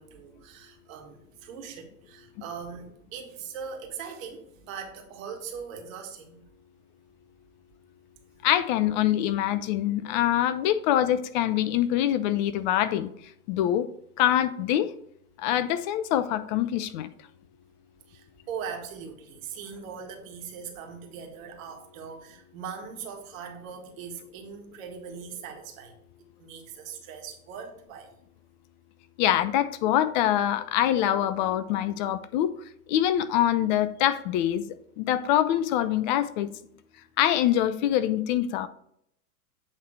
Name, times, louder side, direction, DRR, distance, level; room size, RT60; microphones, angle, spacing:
voice 1, 0.0-6.4 18.1-28.1, right 6 dB, 55° right, 3 dB, 1.6 m, -40 dB
voice 2, 8.4-13.1 13.5-13.9 14.2-14.9 15.4-17.1 29.2-32.5 32.9-34.6 35.0-36.5 37.2-38.7, left 12 dB, 35° left, 13 dB, 0.4 m, -24 dB
8.3 x 3.3 x 4.5 m, 0.70 s
hypercardioid pair, 100°, 46 cm